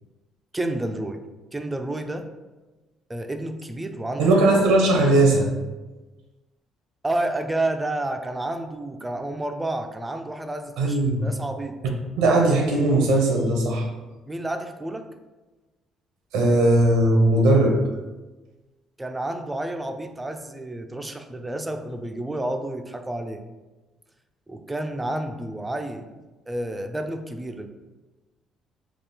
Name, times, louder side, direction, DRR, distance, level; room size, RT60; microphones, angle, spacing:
voice 1, 0.5-1.2 1.5-2.3 3.1-4.3 7.0-11.8 14.3-15.1 19.0-23.4 24.5-26.2 26.5-27.7, right 1 dB, 15° right, 6 dB, 0.4 m, -30 dB
voice 2, 4.2-5.5 10.8-11.3 12.2-13.9 16.3-17.8, right 2 dB, 90° right, 1 dB, 0.8 m, -18 dB
3.6 x 2.4 x 4.1 m, 1.2 s
cardioid pair, 85°, 0 cm